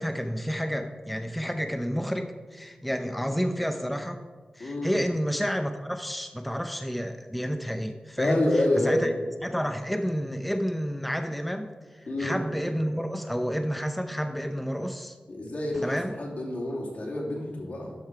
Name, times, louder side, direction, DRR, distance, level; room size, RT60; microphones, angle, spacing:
voice 1, 0.0-4.2 4.5-8.4 8.8-9.1 9.4-15.2 15.8-16.1, equal, ahead, 6 dB, 0.6 m, -30 dB
voice 2, 4.6-5.0 8.2-9.1 12.1-12.4 15.3-17.9, left 1 dB, 65° left, -3 dB, 2.8 m, -28 dB
12.0 x 5.5 x 4.7 m, 1.4 s
cardioid pair, 60°, 3 cm